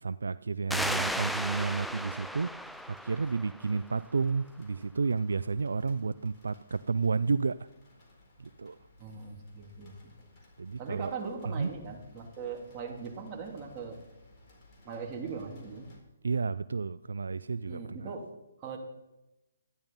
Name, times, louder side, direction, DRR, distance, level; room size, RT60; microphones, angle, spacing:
voice 1, 0.0-7.7 8.4-8.8 10.6-11.1 11.4-11.7 16.2-18.1, right 4 dB, 80° right, 15 dB, 0.4 m, -31 dB
sound 1, 0.7-16.0, left 1 dB, 30° left, 4.2 m, -59 dB
sound 2, 0.7-4.1, equal, ahead, 0.4 m, -35 dB
voice 2, 9.0-10.1 10.8-14.0 14.8-15.9 17.7-18.3 18.6-18.8, right 5 dB, 25° right, -1 dB, 3.0 m, -40 dB
13.0 x 10.5 x 5.6 m, 0.93 s
hypercardioid pair, 140°, 0 cm